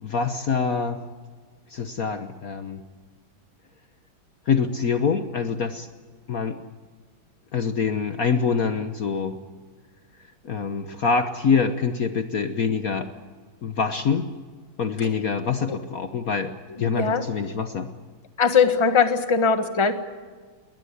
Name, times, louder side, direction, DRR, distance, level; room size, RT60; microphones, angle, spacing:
voice 1, 0.0-1.0 1.7-2.8 4.5-5.9 6.3-6.6 7.5-9.4 10.4-13.1 13.6-14.3 14.8-17.9, left 5 dB, 50° left, 8 dB, 1.3 m, -25 dB
voice 2, 16.9-17.2 18.4-19.9, left 6 dB, 15° left, 8 dB, 1.2 m, -20 dB
20.5 x 20.0 x 9.9 m, 1.5 s
omnidirectional pair, 2.2 m